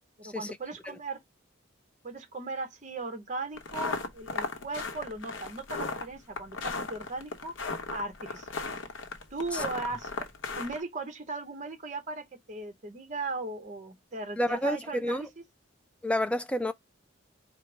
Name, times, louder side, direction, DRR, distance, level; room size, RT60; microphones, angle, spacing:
voice 1, 0.2-1.2 2.0-7.5 7.9-8.6 9.3-10.3 10.6-15.3, right 3 dB, 40° right, 0.9 m, -37 dB
sound 1, 3.6-10.8, left 3 dB, 75° left, 0.8 m, -36 dB
voice 2, 14.4-15.2 16.0-16.7, left 1 dB, 5° left, 0.3 m, -29 dB
4.3 x 2.0 x 4.5 m
head